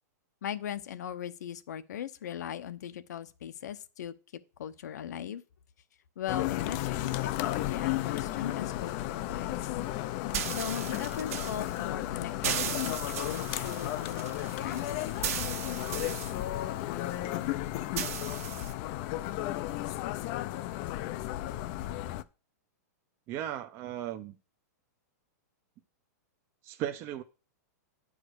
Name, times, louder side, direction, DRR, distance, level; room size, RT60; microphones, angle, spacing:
voice 1, 0.4-4.1 4.6-5.4 6.2-9.6 10.5-14.9, left 9 dB, 75° left, 0.9 m, -39 dB
sound 1, 6.3-22.2, left 15 dB, 30° left, 0.4 m, -34 dB
sound 2, 7.3-18.7, right 10 dB, 55° right, 1.1 m, -39 dB
voice 2, 23.3-24.4 26.6-27.2, right 11 dB, 25° right, 0.5 m, -36 dB
9.9 x 4.9 x 6.2 m
supercardioid pair, 165°, 9 cm